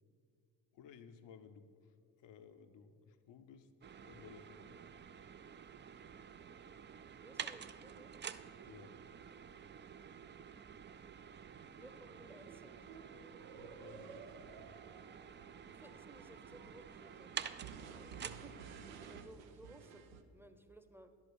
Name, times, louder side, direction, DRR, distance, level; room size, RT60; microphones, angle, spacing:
voice 1, 0.7-3.7 4.0-4.8 8.6-9.0 13.5-14.8 19.1-19.3, left 7 dB, 70° left, 9 dB, 0.7 m, -58 dB
sound 1, 3.8-19.2, right 7 dB, 25° right, 0.3 m, -50 dB
voice 2, 7.2-8.1 11.8-12.8 15.7-17.3 17.9-18.5 19.0-20.0 20.3-21.1, right 1 dB, 5° right, 9 dB, 0.8 m, -58 dB
sound 2, 11.5-20.2, right 6 dB, 85° right, 0.6 m, -55 dB
10.5 x 5.5 x 6.3 m, 2.3 s
hypercardioid pair, 50°, 45 cm